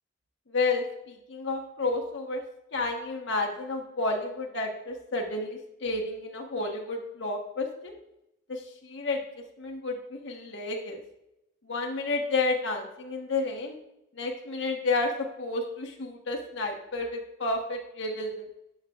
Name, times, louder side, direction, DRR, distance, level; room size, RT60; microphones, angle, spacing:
voice 1, 0.5-2.4 2.7-7.9 8.5-11.0 11.6-13.8 14.1-18.4, left 3 dB, 70° left, 1 dB, 1.2 m, -31 dB
12.0 x 7.8 x 2.3 m, 0.86 s
head